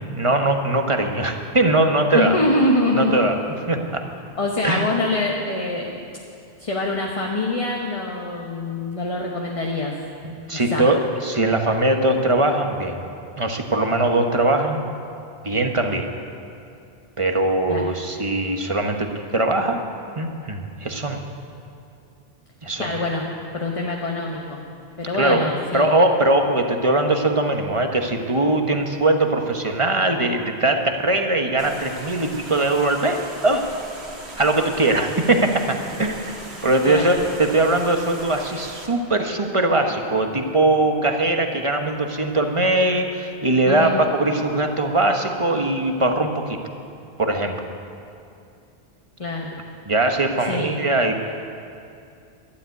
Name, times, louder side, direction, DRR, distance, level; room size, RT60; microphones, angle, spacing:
voice 1, 0.0-2.3 2.9-3.4 3.7-4.0 4.6-4.8 10.2-13.0 13.4-14.9 15.4-16.1 17.2-19.8 20.2-21.2 22.6-22.9 25.2-25.5 25.7-33.7 34.4-36.3 36.6-46.6 47.2-47.5 49.9-51.2, right 2 dB, 30° right, 4 dB, 1.1 m, -21 dB
voice 2, 2.1-3.1 4.4-6.0 6.6-9.9 10.7-10.9 17.7-17.8 22.8-23.3 23.5-24.6 25.0-25.9 36.8-37.1 43.6-44.0 49.2-49.5 50.5-50.7, left 2 dB, 35° left, -1 dB, 1.2 m, -24 dB
sound 1, 31.6-38.9, right 2 dB, 85° right, 2.2 m, -39 dB
12.5 x 11.5 x 9.4 m, 2.5 s
omnidirectional pair, 1.1 m